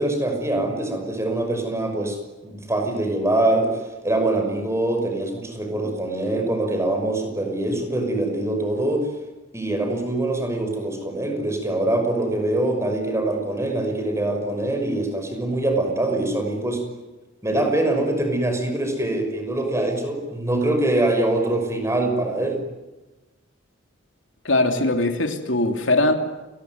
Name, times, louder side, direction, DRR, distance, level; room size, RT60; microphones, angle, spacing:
voice 1, 0.0-2.2 2.4-9.1 9.5-16.8 17.4-22.6, right 1 dB, 15° right, 4 dB, 6.0 m, -24 dB
voice 2, 24.4-26.1, left 2 dB, 70° left, 5 dB, 2.8 m, -20 dB
29.5 x 20.5 x 9.5 m, 1.1 s
head